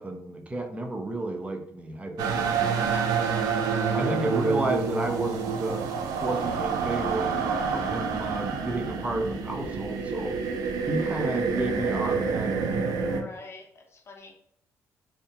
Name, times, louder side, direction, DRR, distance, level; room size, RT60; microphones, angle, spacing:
voice 1, 0.0-2.8 3.9-5.9 6.2-10.6 10.9-12.7, right 1 dB, 20° right, 0.6 m, -31 dB
sound 1, 2.2-13.2, right 5 dB, 80° right, 0.4 m, -28 dB
voice 2, 2.8-3.2 3.6-4.0 13.1-14.4, left 3 dB, 45° left, 0.5 m, -45 dB
2.7 x 2.1 x 2.8 m
supercardioid pair, 70°, 6 cm